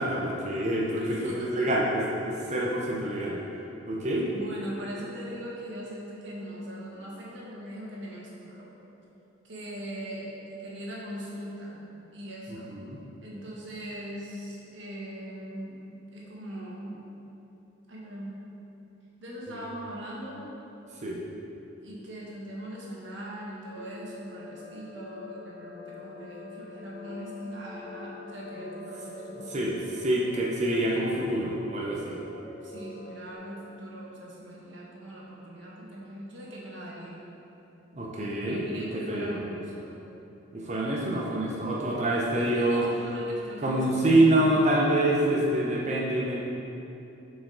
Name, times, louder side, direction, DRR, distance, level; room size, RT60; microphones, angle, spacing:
voice 1, 0.0-3.4 3.9-4.3 12.5-13.0 21.0-21.2 29.5-32.2 37.9-39.4 40.5-42.9 43.6-46.4, right 1 dB, 35° right, -3 dB, 0.7 m, -26 dB
voice 2, 0.9-1.5 4.3-8.8 9.4-11.8 12.1-12.7 13.2-15.8 16.1-17.0 17.9-18.3 19.2-20.4 21.8-29.8 32.6-37.2 38.4-40.0 42.3-44.4, equal, 60° right, -5 dB, 1.5 m, -40 dB
sound 1, 23.8-33.4, left 2 dB, 15° left, 0.9 m, -44 dB
7.4 x 5.1 x 3.9 m, 2.9 s
head